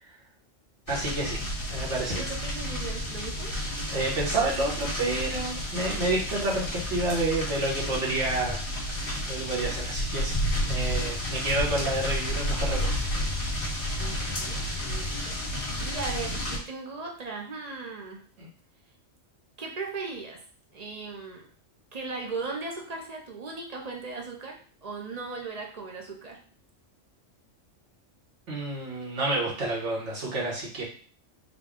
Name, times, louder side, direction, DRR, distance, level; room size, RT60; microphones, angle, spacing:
sound 1, 0.9-16.6, left 1 dB, 45° left, 1.6 m, -31 dB
voice 1, 0.9-1.4 1.7-2.3 3.9-8.6 9.2-10.3 10.6-12.9 18.4-18.5 28.5-30.8, right 2 dB, 65° right, -4 dB, 1.4 m, -29 dB
voice 2, 2.2-3.6 13.9-18.2 19.6-20.4 20.7-21.5 21.9-26.4, right 4 dB, 40° right, 0 dB, 0.6 m, -38 dB
3.9 x 2.3 x 3.5 m, 0.43 s
omnidirectional pair, 1.3 m